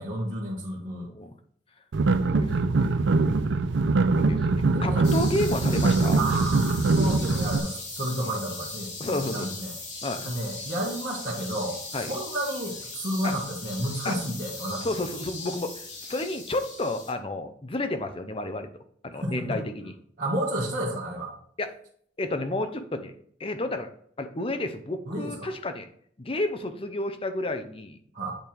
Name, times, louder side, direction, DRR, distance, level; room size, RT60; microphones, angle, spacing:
voice 1, 0.0-1.1 1.9-2.3 4.0-4.2 4.7-5.0 6.1-9.7 10.2-14.9 19.2-19.6 20.2-21.3 25.1-25.5 28.1-28.4, right 1 dB, 45° right, -7 dB, 1.4 m, -31 dB
sound 1, 1.9-7.6, right 3 dB, 75° right, 0.5 m, -23 dB
voice 2, 2.4-2.9 4.1-6.2 9.0-9.6 10.0-10.3 11.9-12.1 13.2-13.3 14.0-14.2 14.8-18.7 19.0-19.9 21.6-21.7 22.2-23.1 23.4-23.9 24.2-25.9 26.2-28.0, left 2 dB, 30° left, 8 dB, 0.7 m, -31 dB
sound 2, 5.0-17.1, left 3 dB, 75° left, 3.4 m, -39 dB
8.9 x 3.4 x 4.5 m, 0.62 s
head